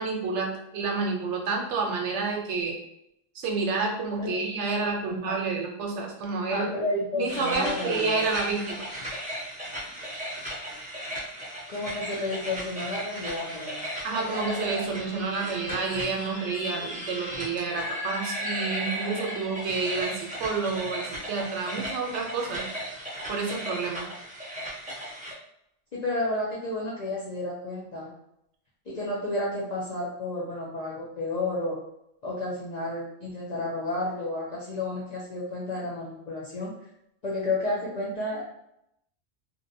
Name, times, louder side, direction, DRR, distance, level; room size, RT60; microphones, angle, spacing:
voice 1, 0.0-2.7 3.3-6.7 7.1-8.8 14.0-22.7 23.3-24.0, right 4 dB, 75° right, 1 dB, 0.9 m, -29 dB
voice 2, 5.0-5.3 6.5-8.2 11.7-13.9 25.9-28.1 28.9-31.8 32.2-36.7 37.2-38.5, left 2 dB, 55° left, -6 dB, 0.5 m, -31 dB
sound 1, 7.3-25.3, equal, 10° right, 0.5 m, -36 dB
2.6 x 2.1 x 2.6 m, 0.78 s
omnidirectional pair, 1.2 m